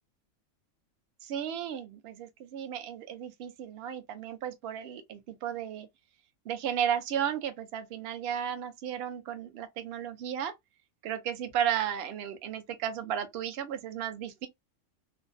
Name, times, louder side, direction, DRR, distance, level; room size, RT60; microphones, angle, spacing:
voice 1, 1.2-5.9 6.5-10.5 11.0-14.5, right 9 dB, 60° right, 0.7 m, -34 dB
2.6 x 2.0 x 2.4 m
omnidirectional pair, 1.3 m